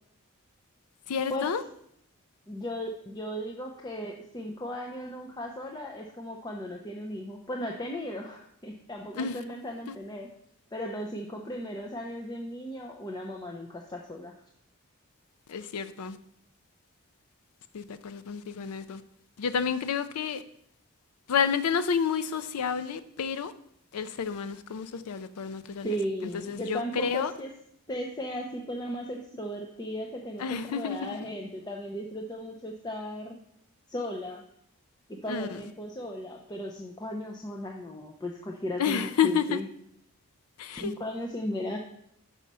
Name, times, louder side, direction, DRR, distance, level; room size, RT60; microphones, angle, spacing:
voice 1, 1.1-1.6 9.2-9.4 9.9-10.0 15.5-16.2 17.7-19.0 19.4-20.4 21.3-23.5 23.9-26.0 26.2-27.3 30.4-31.2 35.3-35.6 38.8-39.6 40.6-40.9, left 6 dB, 85° left, 0.4 m, -30 dB
voice 2, 2.5-10.3 10.7-14.3 25.8-27.5 27.9-33.4 33.9-34.4 35.1-39.7 40.7-41.8, equal, 20° left, 0.5 m, -36 dB
6.1 x 5.6 x 5.4 m
head